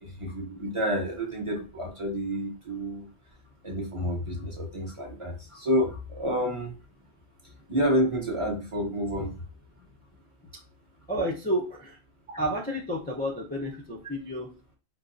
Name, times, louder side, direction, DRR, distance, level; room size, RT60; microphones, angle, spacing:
voice 1, 0.0-3.1 3.6-6.7 7.7-9.3, equal, 30° right, 0 dB, 0.9 m, -29 dB
voice 2, 11.1-12.0 12.4-14.5, equal, 10° left, -3 dB, 0.5 m, -30 dB
4.7 x 2.2 x 2.5 m, 0.32 s
omnidirectional pair, 1.1 m